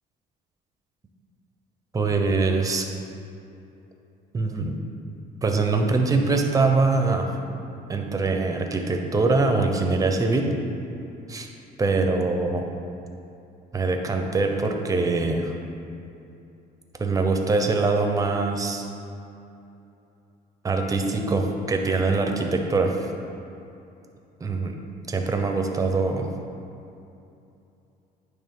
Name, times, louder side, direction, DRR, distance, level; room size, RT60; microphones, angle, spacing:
voice 1, 1.9-2.8 4.3-4.8 5.4-7.3 7.9-10.5 11.3-11.5 11.8-12.6 13.7-15.5 17.0-18.9 20.6-23.0 24.4-24.7 25.1-26.3, right 3 dB, 20° right, 3 dB, 0.7 m, -23 dB
8.9 x 3.4 x 5.3 m, 2.7 s
cardioid pair, 110°, 17 cm